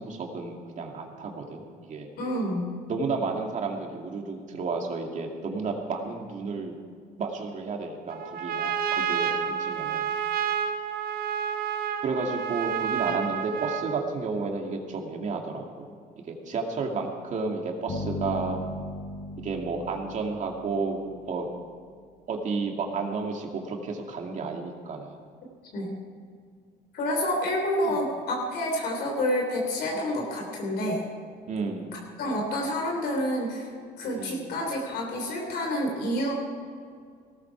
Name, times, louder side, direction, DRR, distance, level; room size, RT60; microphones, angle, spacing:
voice 1, 0.0-1.6 1.9-2.1 2.9-6.7 7.2-10.1 12.0-15.9 16.2-18.6 19.4-21.0 21.2-21.5 22.3-25.2 27.8-28.0 29.9-30.1 31.5-32.0 34.2-34.5, right 4 dB, 45° right, 2 dB, 2.4 m, -32 dB
voice 2, 2.2-2.7 25.7-26.0 26.9-31.1 31.9-33.7 34.0-36.3, left 1 dB, 70° left, 0 dB, 3.5 m, -28 dB
Trumpet, 8.1-14.1, right 8 dB, 60° right, 1.2 m, -29 dB
sound 1, 17.9-21.6, left 1 dB, 55° left, 4.8 m, -38 dB
18.0 x 14.0 x 4.7 m, 2.1 s
cardioid pair, 110°, 17 cm